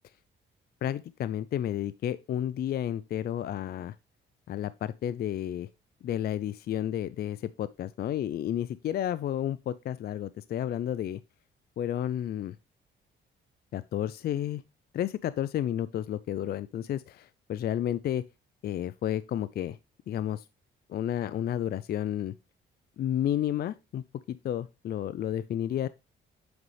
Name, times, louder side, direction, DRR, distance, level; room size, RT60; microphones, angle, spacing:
voice 1, 0.8-3.9 4.5-5.7 6.0-11.2 11.8-12.6 13.7-14.6 14.9-18.2 18.6-19.8 20.1-20.4 20.9-22.3 23.0-25.9, left 11 dB, 50° left, 0.4 m, -31 dB
7.9 x 5.5 x 3.1 m
cardioid pair, 90°, 20 cm